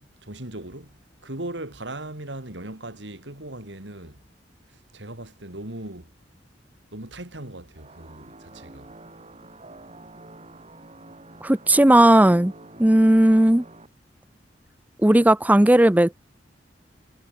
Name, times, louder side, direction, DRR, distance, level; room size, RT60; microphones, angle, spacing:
voice 1, 0.0-4.2 4.7-6.1 6.9-9.0, right 1 dB, 80° right, 4.2 m, -38 dB
sound 1, 7.7-13.9, right 2 dB, 35° right, 4.0 m, -46 dB
voice 2, 11.4-12.5 12.8-13.6 15.0-16.1, right 1 dB, 10° right, 0.6 m, -16 dB
head